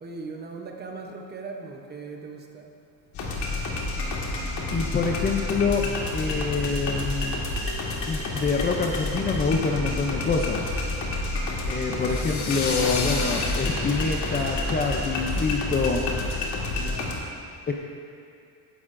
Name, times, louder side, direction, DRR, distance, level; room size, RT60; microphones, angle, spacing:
voice 1, 0.0-2.7 16.7-17.2, right 4 dB, 25° right, 2 dB, 0.7 m, -39 dB
sound 1, 3.1-17.1, left 2 dB, 70° left, 1.9 m, -29 dB
voice 2, 4.7-5.8 6.1-7.4 8.1-10.6 11.7-16.1 17.7-17.8, left 4 dB, 25° left, 0 dB, 0.4 m, -26 dB
15.5 x 11.0 x 2.5 m, 2.4 s
cardioid pair, 180°, 43 cm